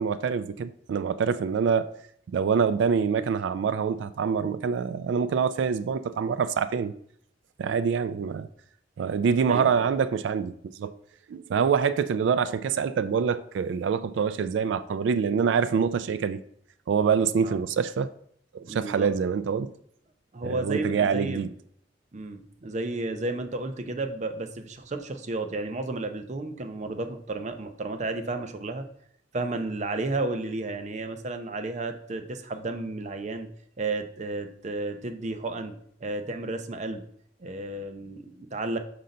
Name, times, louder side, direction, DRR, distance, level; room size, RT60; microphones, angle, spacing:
voice 1, 0.0-1.9 2.3-6.9 7.6-8.5 9.0-10.9 11.3-16.4 16.9-18.1 18.5-19.7 20.4-21.5, right 6 dB, 80° right, 0.3 m, -25 dB
voice 2, 9.5-9.8 17.4-17.6 18.7-19.1 20.3-21.4 22.1-28.8 29.3-33.5 33.8-35.8 36.0-37.0 37.4-38.8, right 2 dB, 40° right, 0.6 m, -32 dB
5.5 x 3.9 x 5.3 m
head